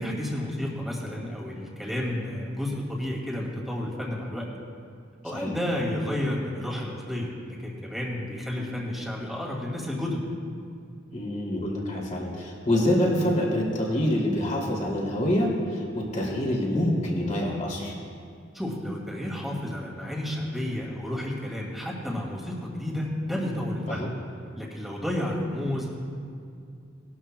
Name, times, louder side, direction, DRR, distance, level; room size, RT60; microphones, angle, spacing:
voice 1, 0.0-4.5 5.2-10.2 18.5-24.1 24.6-25.9, left 1 dB, ahead, -3 dB, 2.2 m, -31 dB
voice 2, 11.1-17.9 23.9-24.1, left 1 dB, 40° left, -2 dB, 2.6 m, -26 dB
19.5 x 12.0 x 2.2 m, 2.3 s
head